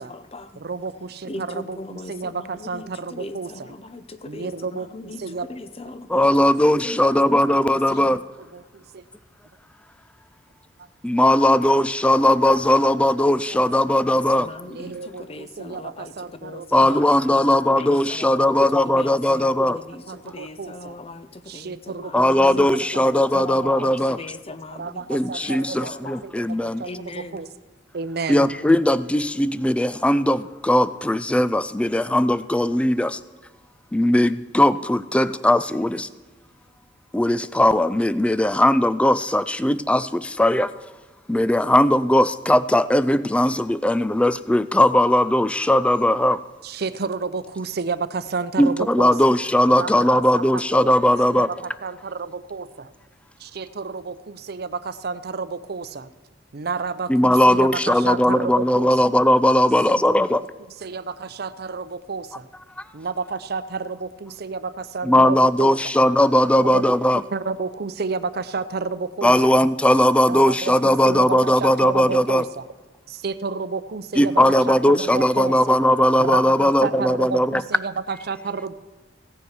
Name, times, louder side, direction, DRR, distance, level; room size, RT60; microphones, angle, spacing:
voice 1, 0.0-0.6 1.3-6.3 6.8-7.4 7.6-8.2 13.5-27.4, left 2 dB, 30° left, 12 dB, 0.7 m, -39 dB
voice 2, 0.6-3.7 4.3-5.5 6.4-6.5 8.0-8.1 8.5-9.0 13.5-13.6 14.6-17.0 18.4-18.8 19.3-19.4 20.1-21.0 21.5-22.9 23.1-24.0 24.7-26.9 27.2-27.5 27.9-28.5 46.6-49.3 49.7-50.9 51.2-51.4 51.8-52.9 53.4-56.1 56.5-58.9 59.9-62.5 62.9-65.7 66.6-66.8 67.3-69.5 70.3-72.7 73.1-75.6 76.2-78.7, right 4 dB, 60° right, 14 dB, 0.6 m, -31 dB
voice 3, 6.1-8.2 11.0-14.5 16.7-19.8 22.1-24.2 25.1-26.8 28.3-33.2 33.9-36.1 37.1-40.7 41.3-46.4 48.6-51.5 57.1-60.4 65.0-67.2 69.2-72.4 74.2-77.6, left 1 dB, 5° left, 15 dB, 0.3 m, -18 dB
16.0 x 7.0 x 6.5 m, 1.3 s
head